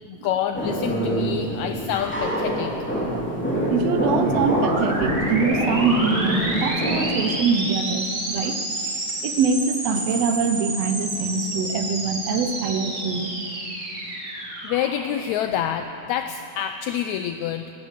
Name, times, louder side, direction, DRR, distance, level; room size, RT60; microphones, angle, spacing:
voice 1, 0.1-2.7 14.6-17.7, left 10 dB, 90° left, 8 dB, 1.6 m, -27 dB
sound 1, 0.5-7.1, right 1 dB, 5° left, 2.1 m, -25 dB
voice 2, 3.1-8.6 9.2-13.3, right 5 dB, 85° right, 8 dB, 1.4 m, -24 dB
sound 2, 4.3-15.9, right 1 dB, 30° right, 2.0 m, -30 dB
16.5 x 13.0 x 6.6 m, 2.6 s
omnidirectional pair, 3.8 m